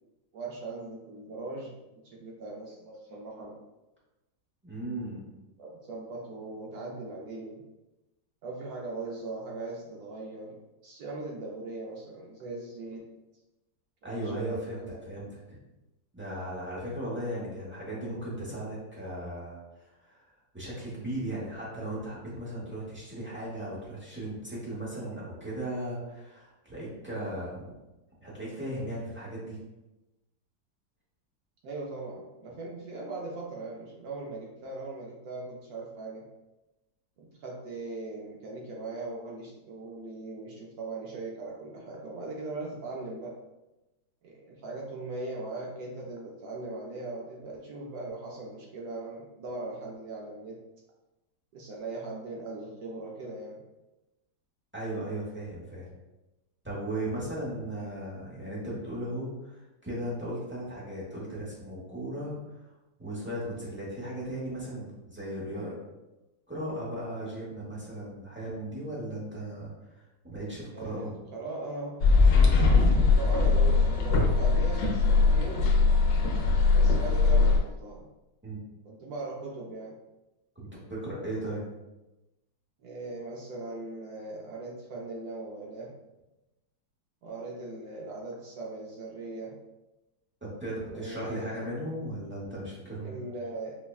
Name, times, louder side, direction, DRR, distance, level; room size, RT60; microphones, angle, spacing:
voice 1, 0.3-1.8 2.0-3.6 5.6-7.6 8.4-13.1 14.0-15.0 31.6-36.3 37.2-43.4 44.2-50.6 51.5-53.6 70.7-72.0 72.3-75.8 76.7-78.1 78.8-80.0 82.8-85.9 87.2-89.6 90.9-91.7 93.0-93.8, right 2 dB, 70° right, -2 dB, 1.0 m, -39 dB
voice 2, 4.6-5.2 14.0-15.6 16.1-19.6 20.0-20.2 20.5-27.7 28.2-29.6 54.7-55.9 56.6-62.4 63.0-65.8 66.5-71.1 78.4-78.6 80.5-81.6 90.4-93.2, right 1 dB, 10° right, -7 dB, 0.5 m, -37 dB
sound 1, 72.0-77.6, left 4 dB, 75° left, 1.2 m, -21 dB
5.6 x 2.2 x 2.3 m, 1.0 s
omnidirectional pair, 2.0 m